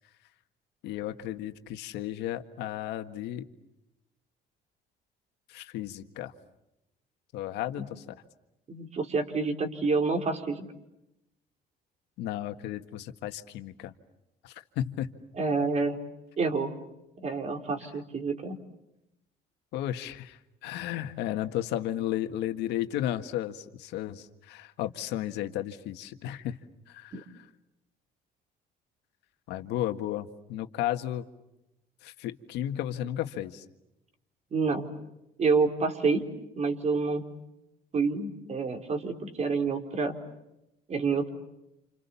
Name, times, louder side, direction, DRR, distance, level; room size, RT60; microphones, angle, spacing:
voice 1, 0.8-3.5 5.5-6.3 7.3-8.0 12.2-13.9 14.4-15.1 19.7-26.6 26.9-27.4 29.5-31.3 32.0-33.6, left 12 dB, 85° left, 8 dB, 1.8 m, -34 dB
voice 2, 8.7-10.7 15.4-16.0 16.4-16.7 17.2-18.6 27.1-27.2 34.5-34.9 35.4-36.3 36.6-37.2 37.9-40.1 40.9-41.3, right 4 dB, 40° right, 5 dB, 4.1 m, -28 dB
29.5 x 28.5 x 7.1 m, 0.90 s
cardioid pair, 110°, 17 cm